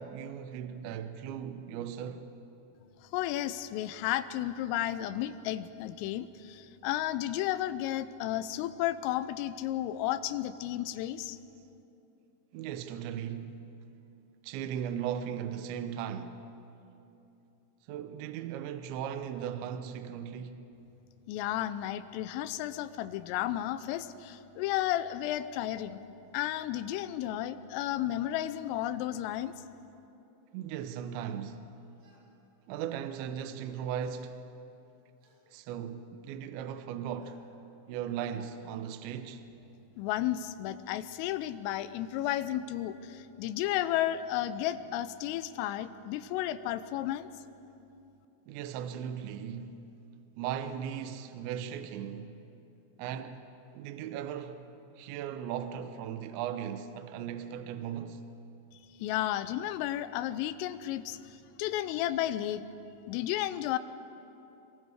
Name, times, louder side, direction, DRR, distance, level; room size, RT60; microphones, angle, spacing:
voice 1, 0.0-2.3 12.5-13.7 14.4-16.4 17.9-20.7 30.5-31.6 32.7-34.5 35.5-37.4 37.9-39.4 48.5-49.8 50.4-52.4 53.0-53.4 53.7-54.6 55.0-58.2, right 9 dB, 80° right, 2.7 m, -37 dB
voice 2, 3.1-11.4 21.3-26.0 26.3-29.5 40.0-47.3 59.0-62.7 63.1-63.8, left 13 dB, 85° left, 3.2 m, -33 dB
sound 1, 29.2-29.5 32.0-32.3 33.5-33.6 35.2-35.5 37.2-37.4 38.1-38.4, right 2 dB, 45° right, 5.3 m, -63 dB
27.0 x 22.5 x 4.9 m
omnidirectional pair, 6.0 m